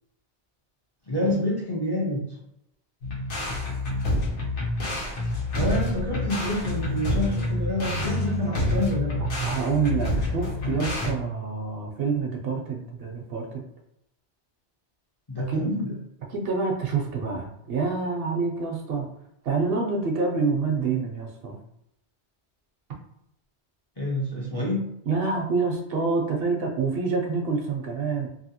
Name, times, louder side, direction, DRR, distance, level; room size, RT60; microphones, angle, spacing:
voice 1, 1.1-2.2 5.6-9.2 15.3-15.9 24.0-24.8, left 1 dB, 30° left, -5 dB, 0.5 m, -27 dB
sound 1, 3.0-11.1, left 1 dB, 85° left, 1.2 m, -28 dB
voice 2, 9.2-13.6 15.5-15.7 16.3-19.1 19.4-21.6 25.1-28.3, right 4 dB, 65° right, 1 dB, 0.7 m, -27 dB
2.7 x 2.7 x 2.8 m, 0.80 s
omnidirectional pair, 1.1 m